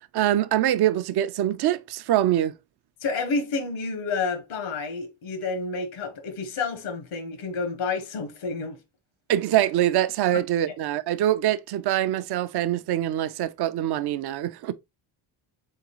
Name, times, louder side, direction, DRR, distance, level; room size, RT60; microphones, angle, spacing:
voice 1, 0.1-2.5 9.3-14.7, right 12 dB, 55° right, 0.5 m, -24 dB
voice 2, 3.0-8.8 10.7-10.8, left 4 dB, 90° left, 1.2 m, -30 dB
3.9 x 3.7 x 2.9 m
cardioid pair, 80°, 48 cm